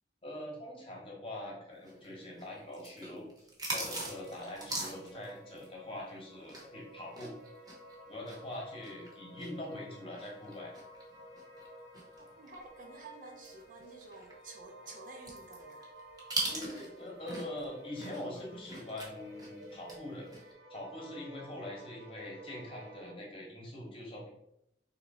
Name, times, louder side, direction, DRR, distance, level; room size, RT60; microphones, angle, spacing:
voice 1, 0.2-7.3 8.1-10.7 16.5-24.3, left 1 dB, 30° left, -2 dB, 1.0 m, -43 dB
sound 1, 1.8-6.8 7.1-12.6 13.0-13.1 13.4-17.7 17.9-20.0 20.3-20.5, right 2 dB, 20° right, 0.9 m, -41 dB
sound 2, 4.0-23.1, equal, 85° right, 1.6 m, -53 dB
voice 2, 12.2-15.9, right 3 dB, 45° right, 1 dB, 0.7 m, -51 dB
3.5 x 2.9 x 4.1 m, 0.80 s
head